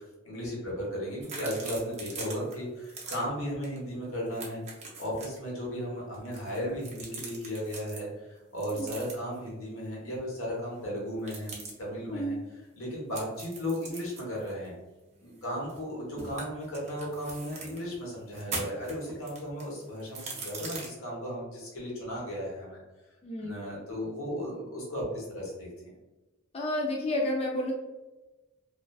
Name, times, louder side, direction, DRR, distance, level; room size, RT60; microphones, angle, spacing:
voice 1, 0.0-4.6 5.0-12.4 12.7-14.7 15.2-22.8 23.4-25.9, equal, 90° left, -4 dB, 1.0 m, -35 dB
sound 1, 1.2-2.5 2.8-3.2 3.6-3.8 4.0-5.4 6.1-8.0 8.6-9.4 11.2-11.7 13.1-15.9 16.2-17.8 18.3-20.9, right 3 dB, 35° right, 0.5 m, -41 dB
voice 2, 12.1-12.4 23.2-23.5 26.5-27.7, left 1 dB, 30° left, -1 dB, 0.3 m, -30 dB
2.4 x 2.3 x 2.3 m, 1.1 s
head